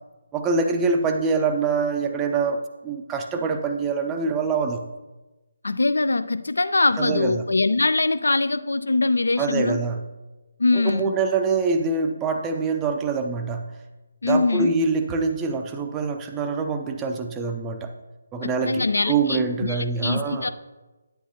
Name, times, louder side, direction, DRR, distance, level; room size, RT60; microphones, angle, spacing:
voice 1, 0.3-4.8 7.0-7.4 9.4-10.0 10.7-13.7 14.2-17.9 18.3-20.5, right 4 dB, 15° right, 5 dB, 0.5 m, -25 dB
voice 2, 5.6-9.8 10.6-11.1 14.2-14.7 18.4-20.5, left 3 dB, 65° left, 12 dB, 0.4 m, -22 dB
9.8 x 8.5 x 2.8 m, 1.1 s
figure-of-eight pair, 145°, 0 cm